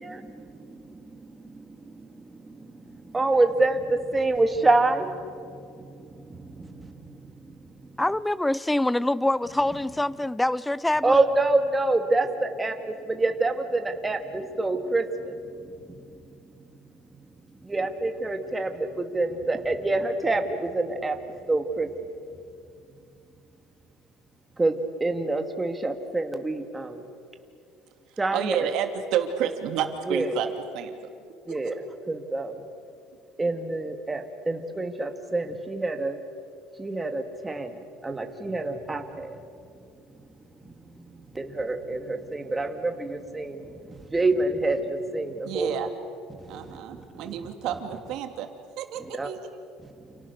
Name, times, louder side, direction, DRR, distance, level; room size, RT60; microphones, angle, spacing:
voice 1, 0.0-5.1 5.4-5.6 5.9-7.1 7.5-7.6 11.0-12.7 13.1-15.4 17.6-21.2 21.5-21.9 24.6-27.0 28.2-28.7 30.1-30.3 31.5-32.6 33.4-36.2 36.8-39.4 40.6-40.7 41.3-43.7 44.1-45.7 46.4-46.5 46.9-47.0 49.0-49.3, right 2 dB, 10° right, 5 dB, 2.1 m, -27 dB
voice 2, 8.0-11.2, left 1 dB, 5° left, 19 dB, 0.6 m, -25 dB
voice 3, 28.3-30.5 30.7-30.9 31.5-31.7 45.4-45.9 46.5-48.5 48.8-49.4, right 9 dB, 65° right, 5 dB, 2.9 m, -30 dB
29.5 x 29.0 x 6.8 m, 2.4 s
cardioid pair, 140°, 0 cm